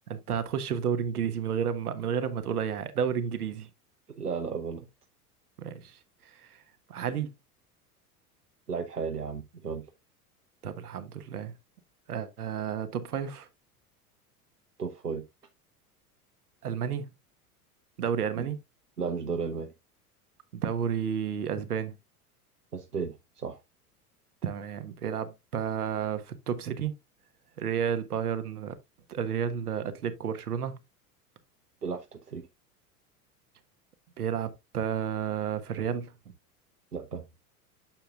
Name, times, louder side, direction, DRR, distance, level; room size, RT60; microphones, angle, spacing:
voice 1, 0.1-3.7 5.6-6.6 6.9-7.3 10.6-11.5 12.1-13.5 16.6-17.1 18.0-18.6 20.5-22.0 24.4-26.9 27.6-28.7 29.1-30.8 34.2-36.1, right 8 dB, 75° right, 1.3 m, -31 dB
voice 2, 4.2-4.9 8.7-9.8 14.8-15.2 18.4-18.5 19.0-19.7 22.7-23.6 31.8-32.4 36.9-37.2, right 5 dB, 90° right, 0.9 m, -34 dB
8.9 x 6.9 x 2.4 m
figure-of-eight pair, 80°, 46 cm